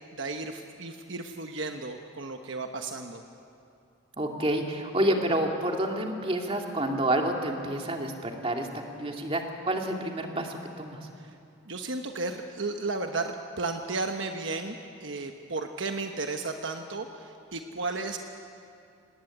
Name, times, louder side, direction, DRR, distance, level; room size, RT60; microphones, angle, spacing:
voice 1, 0.1-3.2 11.2-11.3 11.7-18.2, right 3 dB, 60° right, 5 dB, 1.1 m, -34 dB
voice 2, 4.2-11.0, right 1 dB, 25° right, 2 dB, 2.4 m, -29 dB
25.0 x 19.0 x 9.9 m, 2.6 s
head